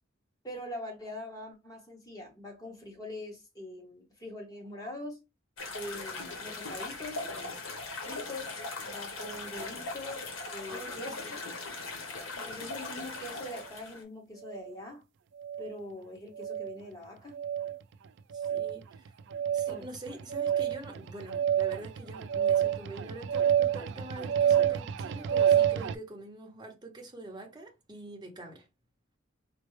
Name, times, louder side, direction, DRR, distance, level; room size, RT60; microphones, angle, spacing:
voice 1, 0.4-5.2 5.7-7.3 8.0-10.2 10.5-11.2 12.5-15.0 15.6-17.4 19.7-19.9, left 1 dB, 20° left, 1.4 m, -43 dB
sound 1, 5.6-14.0, left 3 dB, 70° left, 1.1 m, -39 dB
voice 2, 10.7-11.3 18.3-19.1 19.5-28.6, right 2 dB, 20° right, 0.8 m, -45 dB
sound 2, 14.5-14.7 15.4-15.7 16.4-16.8 17.3-17.8 18.3-18.8 19.3-25.9, right 9 dB, 60° right, 0.3 m, -28 dB
4.3 x 2.2 x 3.2 m
head